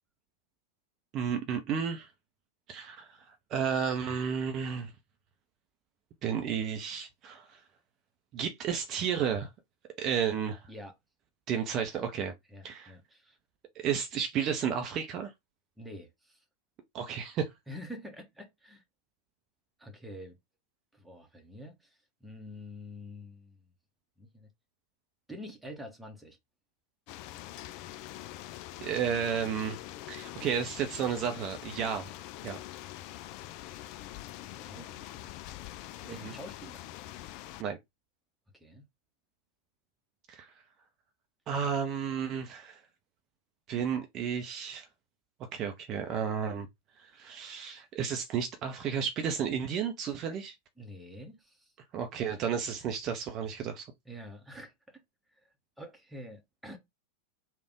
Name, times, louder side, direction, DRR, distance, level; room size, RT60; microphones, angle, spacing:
voice 1, 1.1-2.1 2.7-4.9 6.2-7.6 8.3-9.5 10.0-10.7 11.5-12.3 12.6-12.9 13.8-15.3 16.9-17.5 28.8-29.8 30.1-32.1 32.4-32.6 36.2-36.3 37.6-37.8 40.3-40.5 41.5-42.8 43.7-44.9 45.5-46.7 47.0-50.5 51.9-53.9, right 7 dB, 35° right, 0.6 m, -32 dB
voice 2, 12.5-13.4 15.8-16.4 17.7-18.8 19.8-20.4 20.9-23.7 24.2-24.5 25.3-26.4 34.4-35.4 36.1-36.9 38.6-38.8 50.8-51.7 54.0-55.0 55.8-56.8, equal, 5° right, 1.0 m, -47 dB
sound 1, 27.1-37.6, left 15 dB, 45° left, 0.3 m, -44 dB
3.4 x 2.4 x 3.6 m
figure-of-eight pair, 90°, 0 cm